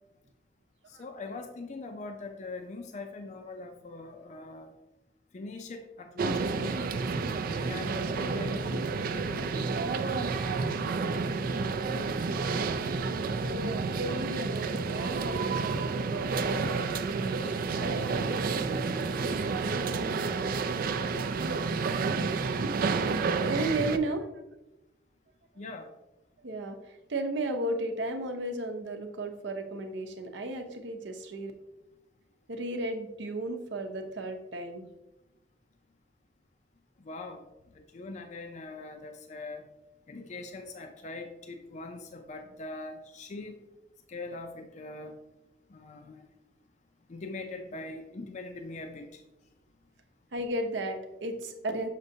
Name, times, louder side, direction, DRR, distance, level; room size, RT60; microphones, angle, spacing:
voice 1, 1.0-4.7 5.3-6.8 7.5-9.5 25.6-25.9 37.1-37.4 37.8-39.6 40.1-43.6 44.1-45.1 45.7-46.3 47.1-49.2, left 3 dB, 40° left, 5 dB, 0.5 m, -42 dB
sound 1, 6.2-24.0, right 4 dB, 50° right, 0.4 m, -30 dB
voice 2, 13.4-18.2 21.0-21.3 23.5-24.3 26.4-31.5 32.5-34.9 50.3-51.9, right 1 dB, 75° right, 5 dB, 0.8 m, -34 dB
6.6 x 5.2 x 2.7 m, 0.97 s
head